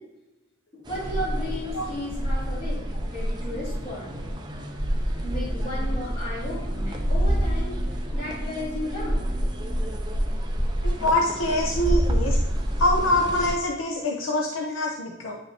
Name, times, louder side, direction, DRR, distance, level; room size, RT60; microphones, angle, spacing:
voice 1, 0.9-4.1 5.2-9.3, left 1 dB, 30° left, -8 dB, 2.4 m, -34 dB
sound 1, 0.9-13.6, equal, 20° right, 0.7 m, -27 dB
voice 2, 10.8-12.4 12.8-15.4, left 1 dB, 90° left, -1 dB, 0.8 m, -24 dB
9.3 x 5.5 x 2.9 m, 1.0 s
head